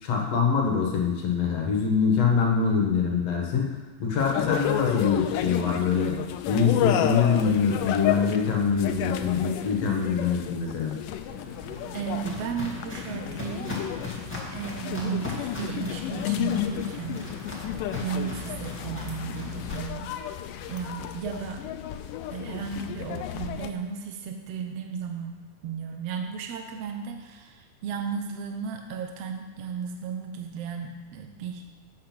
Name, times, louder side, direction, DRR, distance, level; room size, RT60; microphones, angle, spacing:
voice 1, 0.0-3.7 4.0-6.2 6.5-11.0, left 6 dB, 55° left, -1 dB, 2.2 m, -24 dB
sound 1, 4.2-23.7, left 11 dB, 80° left, 2.0 m, -32 dB
Walk footsteps, 11.3-19.8, left 3 dB, 10° left, 0.5 m, -38 dB
voice 2, 11.9-13.8 14.5-17.3 18.0-20.2 20.6-21.6 22.3-31.6, right 7 dB, 85° right, 4 dB, 1.4 m, -34 dB
7.9 x 7.8 x 6.0 m, 1.2 s
omnidirectional pair, 4.0 m